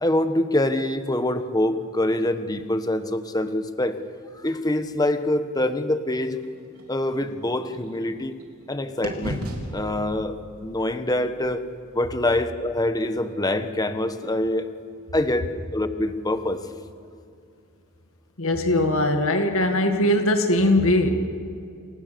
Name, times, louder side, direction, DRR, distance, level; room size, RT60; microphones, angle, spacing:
voice 1, 0.0-4.0 4.4-6.4 6.9-8.4 8.7-9.5 9.7-11.6 11.9-14.7 15.1-16.7, left 1 dB, 20° left, 9 dB, 1.3 m, -25 dB
sound 1, 6.3-8.7 9.0-13.0, right 1 dB, 90° right, 4.0 m, -38 dB
voice 2, 18.4-21.1, left 1 dB, 70° left, 5 dB, 2.0 m, -20 dB
28.5 x 26.0 x 6.9 m, 2.5 s
head